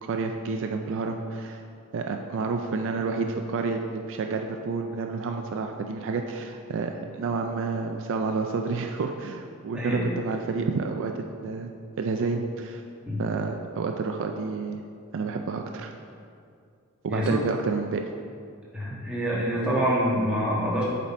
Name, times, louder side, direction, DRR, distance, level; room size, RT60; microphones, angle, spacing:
voice 1, 0.0-1.6 1.9-11.7 12.0-12.8 13.2-14.8 15.1-15.9 17.0-18.0, right 4 dB, 60° right, 4 dB, 0.4 m, -29 dB
voice 2, 18.7-20.8, equal, 5° right, -7 dB, 1.4 m, -26 dB
7.3 x 4.1 x 4.3 m, 2.3 s
head